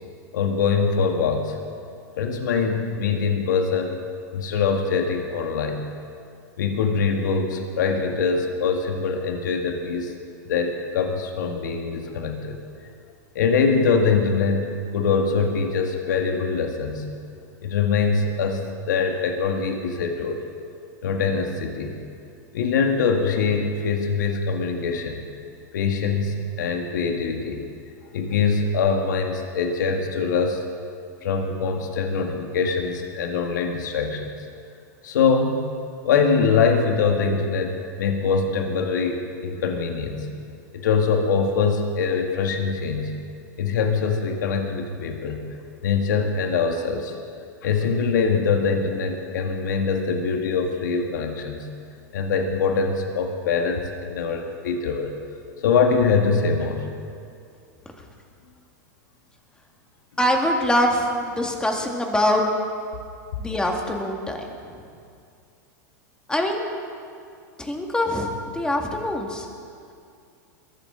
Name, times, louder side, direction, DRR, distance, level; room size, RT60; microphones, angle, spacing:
voice 1, 0.3-1.6 2.2-3.9 4.3-5.8 6.6-10.1 10.5-12.6 13.4-17.1 17.6-20.4 21.0-22.0 22.5-25.2 25.7-27.6 28.1-30.6 31.2-34.3 35.0-35.7 36.0-40.3 40.7-43.2 43.6-45.5 45.8-47.2 47.6-51.7 52.1-55.1 55.6-56.9, left 5 dB, 80° left, 3 dB, 1.8 m, -23 dB
voice 2, 60.2-62.5 63.4-64.6 66.3-66.6 67.6-69.5, left 1 dB, 10° left, 1 dB, 2.0 m, -23 dB
22.0 x 13.0 x 3.9 m, 2.4 s
hypercardioid pair, 120°, 10 cm